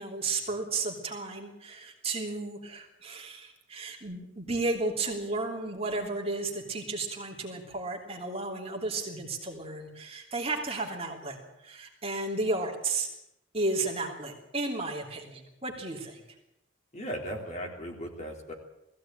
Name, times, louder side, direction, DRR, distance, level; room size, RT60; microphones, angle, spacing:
voice 1, 0.0-13.1 13.5-16.4, right 3 dB, 30° right, 1 dB, 3.1 m, -33 dB
voice 2, 16.9-18.5, equal, 35° left, 1 dB, 3.5 m, -37 dB
19.5 x 15.5 x 9.0 m, 0.87 s
head